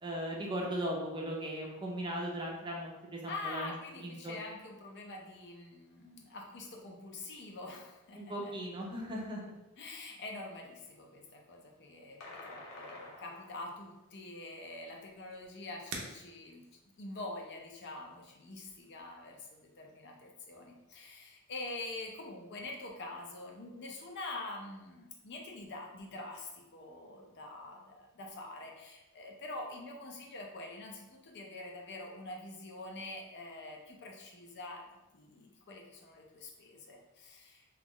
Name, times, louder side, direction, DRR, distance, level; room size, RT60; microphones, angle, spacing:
voice 1, 0.0-4.4 8.2-9.4, right 1 dB, 20° right, -2 dB, 0.5 m, -38 dB
voice 2, 3.3-8.5 9.8-16.6 17.0-34.8 35.1-37.7, left 2 dB, 50° left, 0 dB, 0.5 m, -45 dB
sound 1, 12.2-13.9, left 2 dB, 90° left, 0.9 m, -49 dB
sound 2, 12.2-19.2, right 3 dB, 65° right, 0.6 m, -52 dB
3.0 x 2.4 x 3.6 m, 1.0 s
head